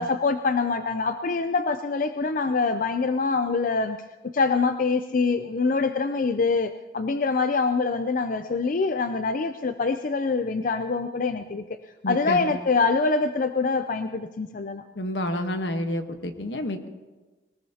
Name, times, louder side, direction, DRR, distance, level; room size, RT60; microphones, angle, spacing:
voice 1, 0.0-4.0 4.3-11.6 12.1-14.8, left 4 dB, 45° left, 9 dB, 0.4 m, -25 dB
voice 2, 12.0-12.6 14.9-16.9, left 1 dB, 75° left, 7 dB, 1.2 m, -29 dB
21.0 x 19.5 x 2.8 m, 1.2 s
head